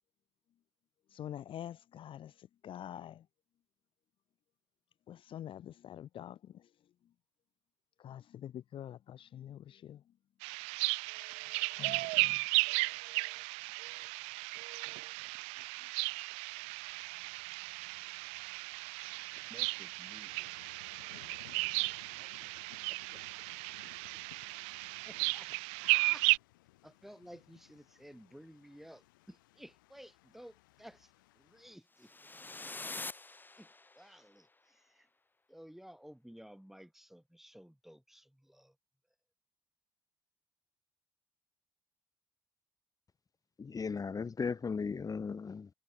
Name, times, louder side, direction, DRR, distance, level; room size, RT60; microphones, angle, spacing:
voice 1, 1.1-3.3 5.1-6.7 8.0-10.0 11.7-12.4 15.8-15.9, left 11 dB, 55° left, 0.9 m, -46 dB
sound 1, 10.4-26.4, right 31 dB, 75° right, 0.6 m, -35 dB
sound 2, 16.5-31.8, left 19 dB, 85° left, 6.1 m, -62 dB
voice 2, 19.5-20.6 21.1-21.5 21.9-22.6 22.9-23.2 25.0-26.3 26.8-32.1 33.6-33.7 33.9-35.1 35.5-38.7, equal, 5° right, 6.5 m, -55 dB
sound 3, 32.0-34.2, left 3 dB, 20° left, 1.5 m, -45 dB
voice 3, 43.6-45.7, left 5 dB, 35° left, 1.8 m, -36 dB
hypercardioid pair, 55°, 11 cm